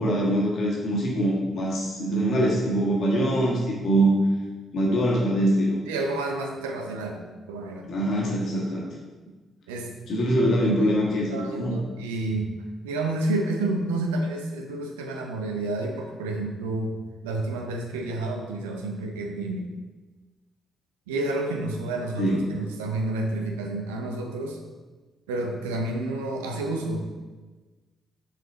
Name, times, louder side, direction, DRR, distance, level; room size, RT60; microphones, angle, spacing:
voice 1, 0.0-4.1 4.7-5.8 7.9-8.9 10.1-11.7 22.2-22.4, right 1 dB, 60° left, -3 dB, 1.6 m, -23 dB
voice 2, 5.8-7.9 9.7-9.9 10.6-12.5 12.8-17.0 17.2-19.7 21.1-24.6 25.3-27.0, right 2 dB, 80° right, 2 dB, 0.7 m, -30 dB
6.3 x 4.2 x 3.9 m, 1.3 s
hypercardioid pair, 40°, 0 cm